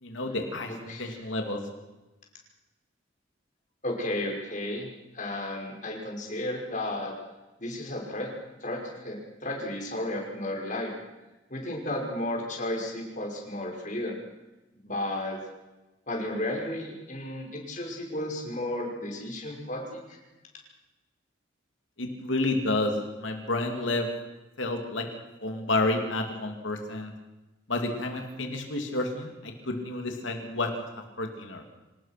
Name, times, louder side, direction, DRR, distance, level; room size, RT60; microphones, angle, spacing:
voice 1, 0.0-1.6 22.0-22.9 23.2-24.1 24.6-25.0 25.4-27.1 27.7-31.6, left 2 dB, 75° left, 3 dB, 2.9 m, -30 dB
voice 2, 0.7-1.2 3.8-7.1 7.6-8.3 8.6-9.2 9.4-10.9 11.5-14.2 14.8-15.4 16.1-20.2, left 1 dB, 40° left, 0 dB, 5.7 m, -33 dB
26.0 x 19.0 x 6.0 m, 1.1 s
head